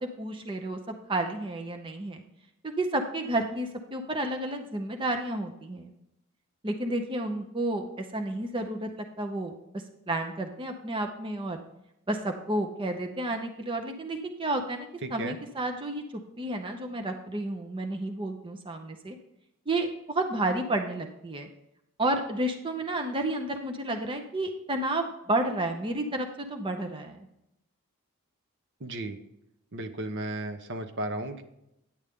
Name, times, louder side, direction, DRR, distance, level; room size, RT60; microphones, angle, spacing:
voice 1, 0.0-0.8 1.1-2.2 2.6-5.9 6.6-11.6 12.1-16.0 16.4-19.2 19.7-21.5 22.0-27.2, right 1 dB, 25° right, 5 dB, 0.7 m, -31 dB
voice 2, 15.0-15.4 28.8-29.2 29.7-31.4, right 2 dB, 55° right, 8 dB, 0.9 m, -34 dB
10.0 x 8.0 x 3.6 m, 0.83 s
head